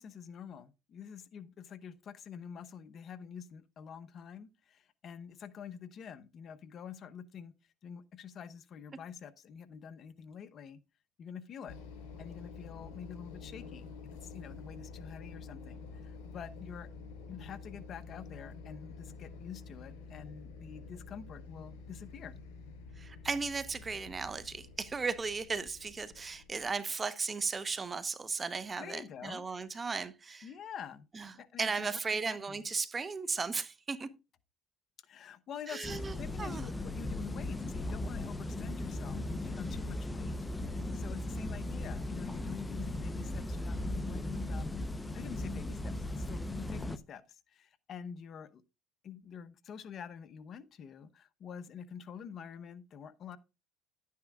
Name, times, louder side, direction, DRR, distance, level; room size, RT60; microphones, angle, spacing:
voice 1, 0.0-7.5 7.8-10.8 11.2-11.8 12.2-16.9 17.3-22.4 28.8-29.4 30.4-31.1 31.3-32.6 35.0-44.8 45.1-48.6 49.0-53.4, left 7 dB, 45° left, 0.9 m, -47 dB
sound 1, 11.7-26.7, left 4 dB, 85° left, 4.3 m, -49 dB
voice 2, 23.0-30.5 31.1-31.3 31.6-34.1 35.7-36.6, right 4 dB, 25° right, 1.0 m, -36 dB
sound 2, 35.8-47.0, left 1 dB, 10° left, 0.8 m, -37 dB
11.5 x 9.5 x 2.4 m
cardioid pair, 110°, 0 cm